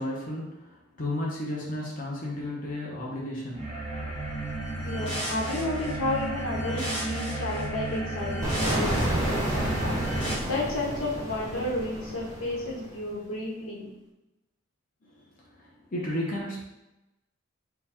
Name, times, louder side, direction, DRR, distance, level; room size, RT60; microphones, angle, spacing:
voice 1, 0.0-3.8 4.8-5.0 15.0-16.6, left 1 dB, 40° left, -4 dB, 0.8 m, -34 dB
sound 1, 3.5-10.3, right 1 dB, 5° left, 1.0 m, -32 dB
voice 2, 4.8-10.0 10.5-13.9, left 2 dB, 90° left, -3 dB, 1.1 m, -32 dB
sound 2, 8.4-13.1, right 1 dB, 15° right, 0.7 m, -30 dB
3.8 x 2.3 x 4.3 m, 0.94 s
head